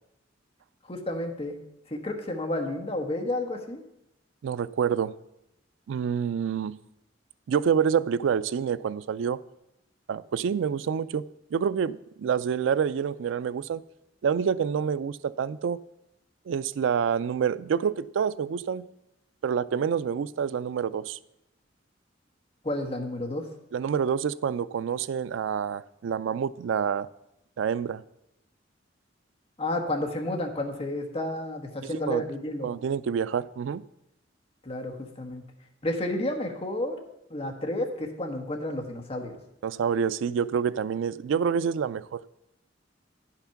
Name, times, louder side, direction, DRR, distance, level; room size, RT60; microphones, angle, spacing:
voice 1, 0.8-1.6 1.9-3.8 22.6-23.4 29.6-32.7 34.6-35.4 35.8-37.0 37.3-39.4, left 1 dB, 30° left, 3 dB, 1.1 m, -31 dB
voice 2, 4.4-5.1 5.9-6.8 7.5-9.4 10.1-11.2 11.5-13.8 14.2-15.8 16.5-18.8 19.4-21.2 23.7-27.1 27.6-28.0 31.8-32.2 32.6-33.8 39.6-42.2, right 7 dB, 80° right, 17 dB, 0.3 m, -27 dB
9.9 x 5.8 x 5.8 m, 0.86 s
head